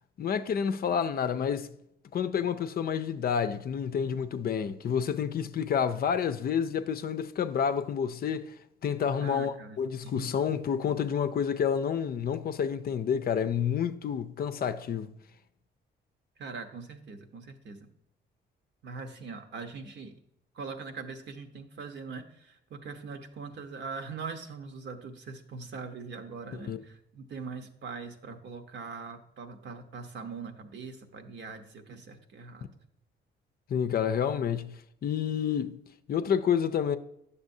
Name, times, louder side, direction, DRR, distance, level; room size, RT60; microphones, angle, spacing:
voice 1, 0.2-1.7 2.1-8.6 8.8-15.1 26.7-26.8 33.7-35.8 36.1-37.0, left 7 dB, 50° left, 0.5 m, -29 dB
voice 2, 9.2-10.5 16.4-17.9 18.8-20.2 20.5-32.7, right 4 dB, 60° right, 0.9 m, -42 dB
9.6 x 6.7 x 2.7 m
cardioid pair, 90°, 20 cm